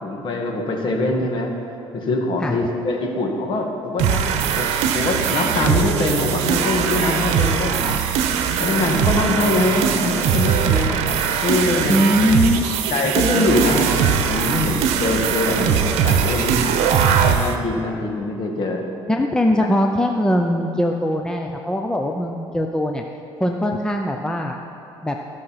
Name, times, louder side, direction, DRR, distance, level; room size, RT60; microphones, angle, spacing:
voice 1, 0.0-1.5 1.9-4.2 4.6-4.7 4.9-8.0 8.6-11.2 11.4-12.1 12.9-16.6 17.2-18.9 19.6-19.7, left 2 dB, 45° left, 1 dB, 1.7 m, -23 dB
sound 1, 4.0-17.6, right 7 dB, 85° right, 0.8 m, -20 dB
voice 2, 11.9-12.6 13.0-13.2 19.1-23.0 23.4-24.6 25.0-25.2, equal, 5° left, 3 dB, 0.5 m, -21 dB
15.0 x 6.5 x 5.7 m, 2.6 s
cardioid pair, 135°, 11 cm